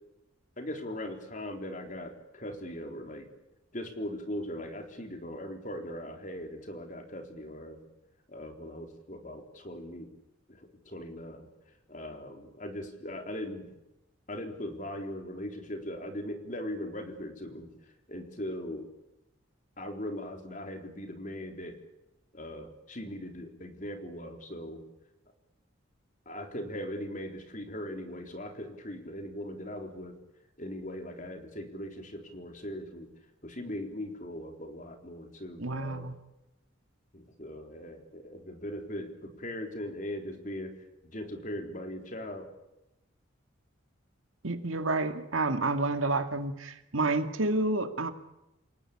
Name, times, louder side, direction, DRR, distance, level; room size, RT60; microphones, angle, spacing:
voice 1, 0.6-3.3 3.7-7.8 8.3-10.1 10.5-11.5 11.9-13.7 14.3-17.7 18.1-18.9 19.8-21.8 22.3-24.8 26.3-30.2 30.6-33.1 33.4-36.1 37.1-42.5, left 1 dB, 40° left, 4 dB, 3.9 m, -39 dB
voice 2, 35.6-36.1 44.4-48.1, right 2 dB, 90° right, 8 dB, 2.2 m, -29 dB
28.5 x 18.5 x 8.7 m, 0.90 s
head